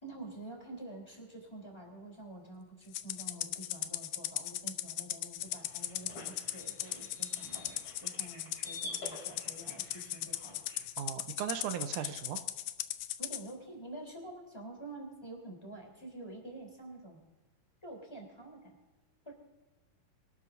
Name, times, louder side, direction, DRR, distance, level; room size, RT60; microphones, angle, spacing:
voice 1, 0.0-10.6 13.2-17.3 17.8-18.7 19.3-19.4, right 2 dB, 10° left, 0 dB, 3.4 m, -48 dB
Rattle (instrument), 2.9-13.4, left 14 dB, 80° left, 1.8 m, -38 dB
sound 1, 5.4-10.9, left 1 dB, 45° left, 5.6 m, -49 dB
voice 2, 11.0-12.4, right 9 dB, 75° right, 8 dB, 2.1 m, -37 dB
24.0 x 12.5 x 2.7 m, 1.2 s
omnidirectional pair, 3.8 m